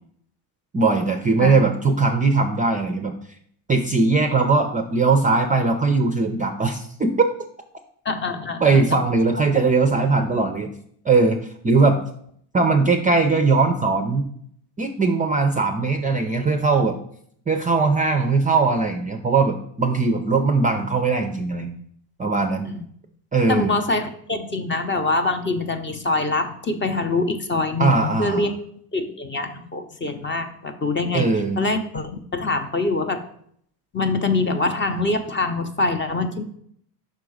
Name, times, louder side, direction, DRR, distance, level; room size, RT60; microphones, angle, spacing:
voice 1, 0.7-3.1 3.7-7.1 8.6-10.7 11.1-11.4 11.6-12.0 12.5-14.3 14.8-17.0 17.5-21.8 22.2-22.7 23.3-23.7 27.8-28.5 31.1-31.6, right 3 dB, 15° right, 5 dB, 0.4 m, -20 dB
voice 2, 8.0-9.0 22.6-22.8 23.5-28.5 28.9-31.3 31.6-33.2 33.9-36.4, left 3 dB, 25° left, 7 dB, 0.7 m, -24 dB
5.6 x 3.8 x 4.8 m, 0.65 s
supercardioid pair, 85°, 49 cm